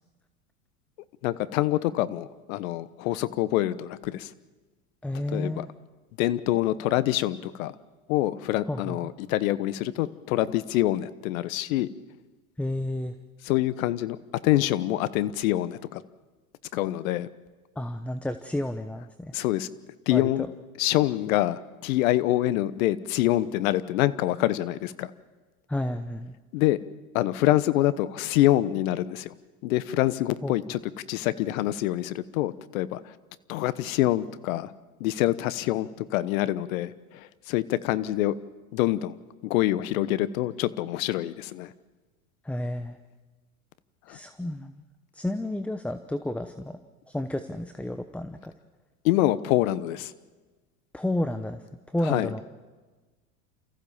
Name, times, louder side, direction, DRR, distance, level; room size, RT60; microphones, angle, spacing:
voice 1, 1.2-4.3 5.3-5.7 6.2-7.7 8.1-11.9 13.4-14.2 14.4-16.0 16.7-17.3 19.3-19.7 20.1-20.4 20.8-25.1 26.5-26.8 27.1-29.3 29.6-30.8 31.1-33.0 33.5-34.7 35.0-38.3 38.7-39.2 39.4-41.7 44.1-44.2 49.0-50.1 52.1-52.3, left 15 dB, 65° left, 16 dB, 1.1 m, -26 dB
voice 2, 5.0-5.7 8.7-9.1 12.6-13.1 17.8-19.3 20.1-20.5 25.7-26.3 30.4-30.5 42.4-43.0 44.1-44.8 45.1-46.8 47.1-48.5 50.9-52.4, left 1 dB, 5° left, 9 dB, 0.9 m, -31 dB
29.5 x 15.0 x 7.1 m, 1.3 s
hypercardioid pair, 90°, 44 cm